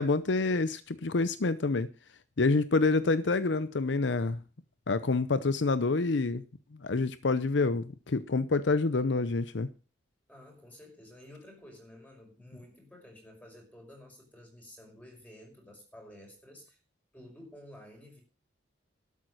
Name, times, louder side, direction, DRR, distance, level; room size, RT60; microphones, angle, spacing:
voice 1, 0.0-1.9 2.4-4.4 4.9-6.4 6.8-9.7, left 3 dB, 70° left, 0.7 m, -27 dB
voice 2, 10.3-16.8 17.1-18.2, left 1 dB, 10° left, 5.7 m, -52 dB
12.5 x 8.3 x 6.4 m
head